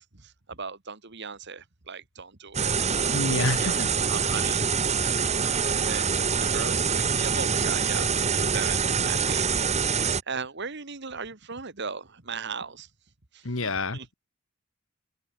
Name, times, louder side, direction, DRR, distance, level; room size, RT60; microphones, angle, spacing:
voice 1, 0.0-2.8 3.6-3.8 4.1-4.7 5.7-6.1 6.4-9.5 9.8-12.9 13.3-14.1, right 5 dB, 60° right, 2.1 m, -38 dB
sound 1, 2.5-10.2, right 6 dB, 35° right, 1.8 m, -25 dB
voice 2, 3.1-3.9 5.4-5.7 13.4-14.1, left 2 dB, 75° left, 2.1 m, -29 dB
head